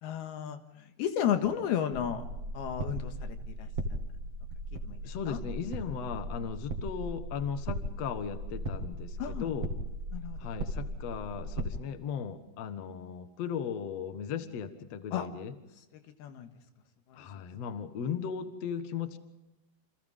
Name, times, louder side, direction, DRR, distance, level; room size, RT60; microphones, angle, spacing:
voice 1, 0.0-2.2 2.5-3.7 4.7-5.0 5.3-5.4 9.2-9.5 10.1-10.4 15.1-15.3 15.9-16.5 17.1-17.3, left 9 dB, 85° left, 7 dB, 3.5 m, -33 dB
sound 1, 1.9-11.7, right 1 dB, 45° right, 2.7 m, -37 dB
voice 2, 5.0-9.7 10.4-15.5 17.1-19.2, left 7 dB, 55° left, 9 dB, 2.1 m, -37 dB
29.0 x 27.5 x 3.7 m, 0.97 s
omnidirectional pair, 4.4 m